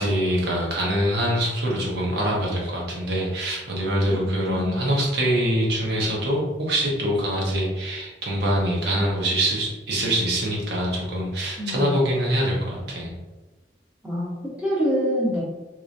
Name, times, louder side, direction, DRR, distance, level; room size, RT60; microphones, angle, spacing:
voice 1, 0.0-13.1, equal, 70° right, -4 dB, 1.0 m, -24 dB
voice 2, 4.1-4.9 11.6-12.1 14.0-15.4, equal, 10° right, -7 dB, 0.9 m, -26 dB
3.8 x 3.1 x 2.6 m, 1.2 s
head